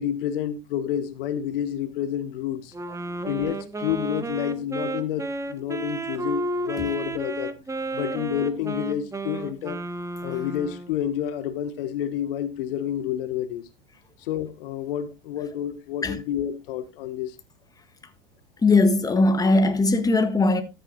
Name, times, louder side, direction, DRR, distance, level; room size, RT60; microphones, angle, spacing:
voice 1, 0.0-2.7 3.2-7.5 7.9-9.8 10.2-13.7 14.2-17.4, left 10 dB, 65° left, 1.6 m, -29 dB
Wind instrument woodwind instrument, 2.7-11.0, right 2 dB, 10° right, 1.1 m, -32 dB
voice 2, 18.6-20.6, left 2 dB, 10° left, 1.6 m, -20 dB
13.5 x 10.0 x 2.5 m
hypercardioid pair, 95°, 29 cm